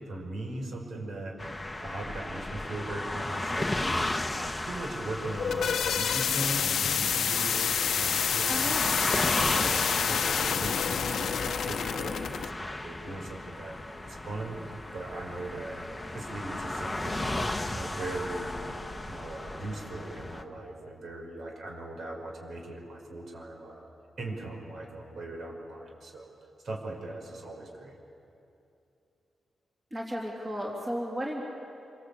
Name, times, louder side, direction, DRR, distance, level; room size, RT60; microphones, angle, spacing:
voice 1, 0.1-1.4 1.8-8.8 9.3-15.8 16.1-17.4 17.7-18.6 19.0-23.9 24.2-26.3 26.6-28.0, right 2 dB, 60° right, 1 dB, 5.3 m, -39 dB
sound 1, 1.4-20.4, left 1 dB, 10° left, 1.2 m, -34 dB
sound 2, 5.2-12.5, left 7 dB, 75° left, 0.9 m, -28 dB
voice 2, 8.5-9.2 29.9-31.4, equal, 20° right, -2 dB, 3.2 m, -34 dB
27.0 x 25.5 x 8.5 m, 2.7 s
wide cardioid pair, 135°, 0 cm